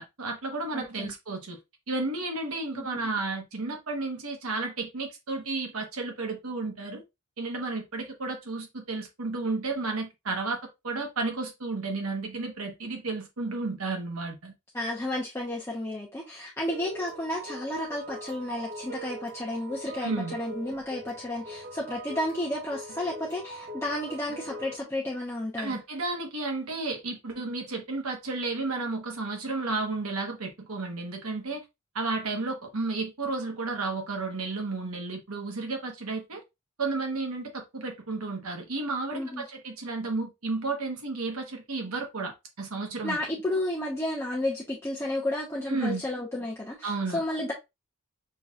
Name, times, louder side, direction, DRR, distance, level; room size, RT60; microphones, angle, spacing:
voice 1, 0.0-1.6 1.9-7.0 7.4-10.6 10.8-14.5 20.0-20.4 25.6-31.6 31.9-36.4 36.8-43.2 45.7-46.0 46.8-47.2, right 3 dB, 85° right, 1.2 m, -32 dB
voice 2, 0.7-1.1 2.7-2.9 14.7-25.8 39.1-39.4 43.0-47.5, left 1 dB, 10° left, 0.7 m, -32 dB
sound 1, 16.7-24.8, right 2 dB, 40° right, 0.8 m, -41 dB
6.3 x 3.0 x 2.4 m
head